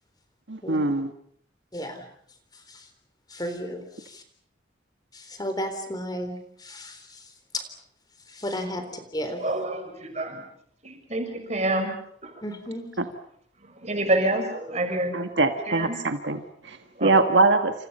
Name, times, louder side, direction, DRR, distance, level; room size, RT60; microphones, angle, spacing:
voice 1, 0.5-1.1 13.0-13.1 15.1-17.7, right 3 dB, 70° right, 7 dB, 1.8 m, -23 dB
voice 2, 1.7-2.0 2.7-2.8 3.3-4.2 5.1-7.0 7.5-7.6 8.3-8.8 9.1-9.4 12.4-12.9, equal, 20° left, 7 dB, 3.8 m, -33 dB
voice 3, 9.4-10.4 10.8-11.9 12.2-12.3 13.6-15.2 15.7-16.0 17.0-17.1, right 1 dB, 35° right, 5 dB, 6.4 m, -27 dB
29.0 x 28.5 x 5.7 m, 0.67 s
head